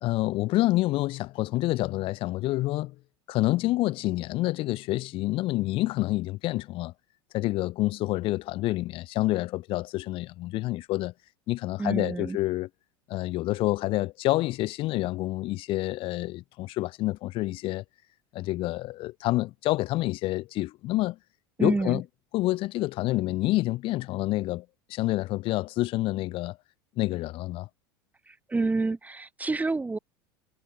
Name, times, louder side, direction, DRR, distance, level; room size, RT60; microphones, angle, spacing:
voice 1, 0.0-2.9 3.3-6.9 7.3-11.1 11.5-12.7 13.1-17.8 18.3-21.2 21.6-22.0 22.3-24.6 24.9-26.6 27.0-27.7, left 18 dB, 45° left, 2.9 m, -28 dB
voice 2, 11.8-12.4 21.6-22.0 28.3-30.0, right 3 dB, 10° right, 2.9 m, -28 dB
figure-of-eight pair, 75°, 12 cm